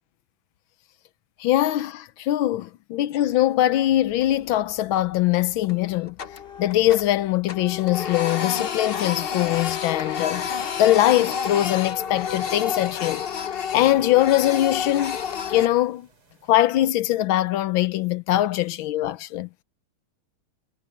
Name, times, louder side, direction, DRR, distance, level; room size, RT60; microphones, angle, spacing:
voice 1, 1.4-6.2 6.6-10.5 10.8-13.3 13.7-15.2 15.5-16.1 16.5-19.5, left 14 dB, 75° left, 1.4 m, -22 dB
Printer, 4.1-4.7 5.0-5.2 5.6-7.2 7.5-15.7, left 7 dB, 90° left, 0.5 m, -30 dB
sound 1, 8.8-16.7, right 3 dB, 80° right, 4.8 m, -57 dB
omnidirectional pair, 2.3 m